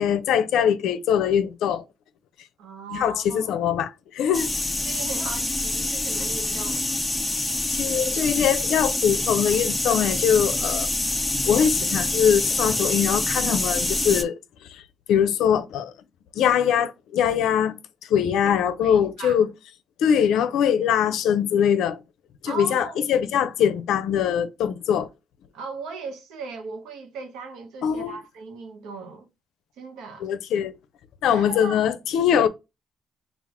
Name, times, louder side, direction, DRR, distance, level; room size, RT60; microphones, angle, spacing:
voice 1, 0.0-1.8 2.9-4.5 7.7-10.9 11.5-14.3 14.7-14.8 15.1-15.9 16.3-17.8 18.1-19.5 20.0-22.0 22.4-25.1 27.8-28.2 30.2-30.7 31.2-32.5, left 8 dB, 85° left, 0.5 m, -22 dB
voice 2, 2.6-3.5 4.9-6.8 18.4-19.4 22.4-23.2 25.5-29.3 29.8-30.3 31.3-31.9 32.4-32.5, right 4 dB, 85° right, 0.9 m, -38 dB
sound 1, 4.3-14.2, left 2 dB, 10° left, 0.5 m, -26 dB
3.5 x 2.4 x 3.4 m
cardioid pair, 90°, 0 cm